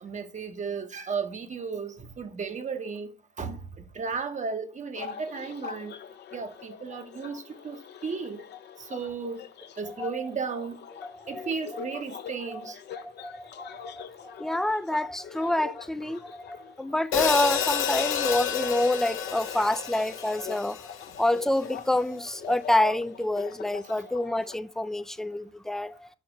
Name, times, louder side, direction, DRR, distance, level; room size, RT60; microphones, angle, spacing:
voice 1, 0.0-3.1 3.4-6.0 6.3-8.4 8.8-9.4 9.8-10.8 11.3-12.8, right 5 dB, 35° right, 0.8 m, -34 dB
sound 1, 4.9-24.6, left 8 dB, 60° left, 0.6 m, -44 dB
voice 2, 13.0-14.0 14.4-20.9 21.2-26.1, left 1 dB, ahead, 0.3 m, -27 dB
Hi-hat, 17.1-21.4, left 8 dB, 85° left, 0.8 m, -29 dB
5.3 x 4.4 x 4.9 m
cardioid pair, 90°, 20 cm